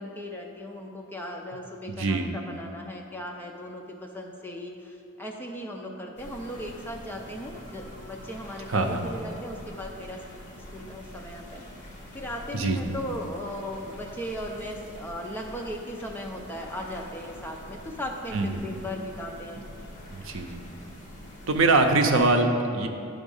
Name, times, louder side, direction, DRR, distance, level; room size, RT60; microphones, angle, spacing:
voice 1, 0.0-10.2 10.7-11.6 12.1-19.6, equal, 10° left, 1 dB, 0.5 m, -37 dB
voice 2, 1.9-2.3 8.7-9.1 12.5-12.9 18.3-18.6 20.1-20.6 21.5-22.9, right 3 dB, 60° right, 4 dB, 0.6 m, -23 dB
sound 1, 6.2-22.3, equal, 35° left, 1.3 m, -45 dB
10.5 x 3.6 x 5.4 m, 2.5 s
head